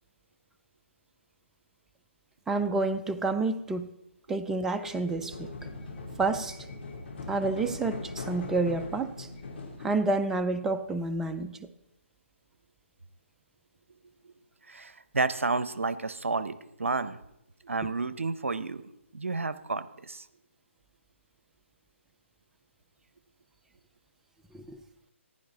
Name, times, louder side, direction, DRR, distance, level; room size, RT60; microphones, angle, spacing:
voice 1, 2.5-3.9 4.3-5.5 6.2-6.6 7.3-9.3 9.8-11.6 24.5-24.8, right 3 dB, 5° right, 9 dB, 0.4 m, -29 dB
sound 1, 4.7-9.9, left 3 dB, 55° left, 3.2 m, -40 dB
voice 2, 14.7-17.2 17.6-18.8 19.1-20.2, right 3 dB, 85° right, 15 dB, 0.7 m, -31 dB
15.0 x 11.0 x 4.0 m, 0.83 s
figure-of-eight pair, 140°, 7 cm